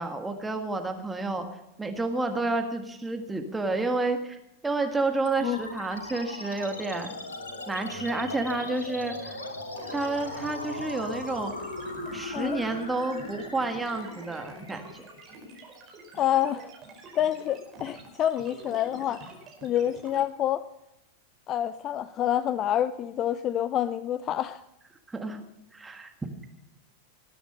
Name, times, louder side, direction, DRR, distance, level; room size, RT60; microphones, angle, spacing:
voice 1, 0.0-1.5 1.8-4.4 4.6-7.1 7.7-9.4 9.9-11.5 12.1-15.1 25.1-25.4 25.7-26.1, right 3 dB, 10° right, 5 dB, 1.6 m, -30 dB
sound 1, 5.3-16.2, left 2 dB, 80° left, 2.9 m, -39 dB
sound 2, 9.8-20.2, right 2 dB, 35° right, 4.9 m, -47 dB
voice 2, 16.1-16.7 17.1-19.3 19.6-20.7 21.5-24.6, left 11 dB, 35° left, 16 dB, 0.5 m, -27 dB
19.5 x 10.0 x 5.4 m, 0.88 s
figure-of-eight pair, 90°, 0 cm